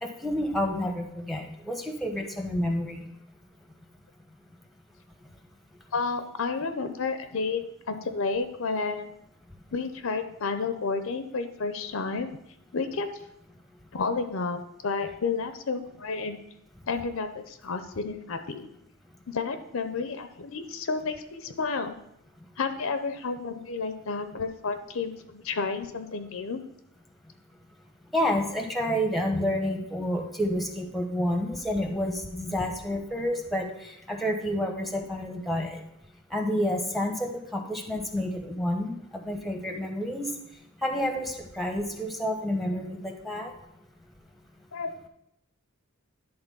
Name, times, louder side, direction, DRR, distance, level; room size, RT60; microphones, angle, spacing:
voice 1, 0.0-3.1 28.1-33.7 34.1-35.8 36.3-38.9 39.2-40.3 40.8-43.5, equal, ahead, 3 dB, 0.9 m, -29 dB
voice 2, 5.9-9.1 9.7-12.3 12.7-13.1 13.9-16.4 16.9-18.7 19.3-21.9 22.6-26.6 42.7-42.8 44.7-45.1, left 4 dB, 65° left, 8 dB, 0.6 m, -31 dB
10.5 x 3.9 x 5.4 m, 0.81 s
head